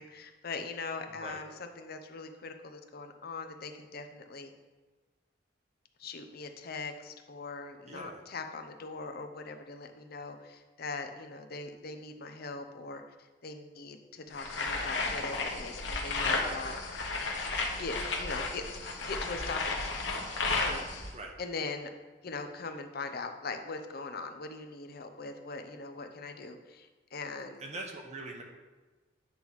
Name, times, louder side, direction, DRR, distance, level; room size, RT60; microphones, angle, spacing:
voice 1, 0.0-4.5 6.0-13.0 13.4-16.8 17.8-18.6 19.1-19.9 20.6-20.8 21.4-21.9 22.2-27.6, left 3 dB, 55° left, 6 dB, 0.6 m, -41 dB
voice 2, 1.1-1.4 7.9-8.2 21.1-21.3 27.6-28.4, right 2 dB, 40° right, 2 dB, 0.8 m, -42 dB
sound 1, 14.4-21.1, left 3 dB, 90° left, 1.1 m, -33 dB
9.0 x 3.1 x 5.4 m, 1.3 s
head